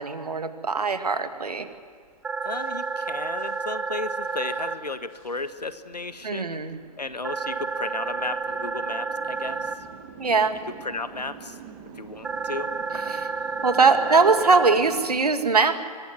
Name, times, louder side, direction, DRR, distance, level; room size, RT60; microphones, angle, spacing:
voice 1, 0.0-1.7 6.2-6.8 10.2-10.6 12.9-13.3 13.6-15.8, right 4 dB, 70° right, 8 dB, 2.2 m, -21 dB
sound 1, 0.8-15.2, right 7 dB, 25° right, 2.1 m, -47 dB
sound 2, 2.2-4.7 7.2-9.7 12.2-14.7, right 4 dB, 5° right, 0.6 m, -30 dB
voice 2, 2.4-6.6 7.0-9.8 10.8-11.6 11.9-12.7 13.9-14.2, left 3 dB, 80° left, 12 dB, 1.5 m, -34 dB
23.5 x 20.5 x 9.5 m, 2.2 s
figure-of-eight pair, 125°, 20 cm